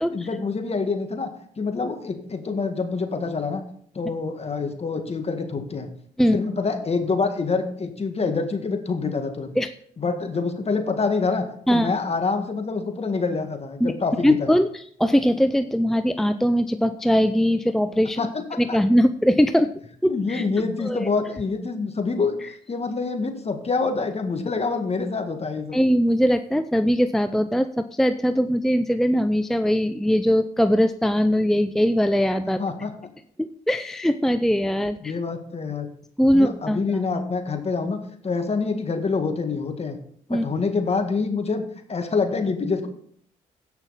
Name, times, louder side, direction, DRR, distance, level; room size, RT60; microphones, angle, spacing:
voice 1, 0.1-1.3 1.6-3.6 3.9-5.9 6.3-9.5 10.0-14.6 18.2-18.8 20.1-25.8 32.6-32.9 35.0-35.9 36.3-40.0 40.3-41.6 41.9-42.9, left 4 dB, 40° left, 6 dB, 1.8 m, -26 dB
voice 2, 14.2-14.7 15.0-18.2 18.6-19.7 20.0-20.4 20.8-21.1 25.7-32.6 33.4-35.1 36.2-36.8 40.3-40.4, equal, ahead, 10 dB, 0.5 m, -21 dB
16.0 x 5.8 x 4.1 m, 0.63 s
supercardioid pair, 55°, 17 cm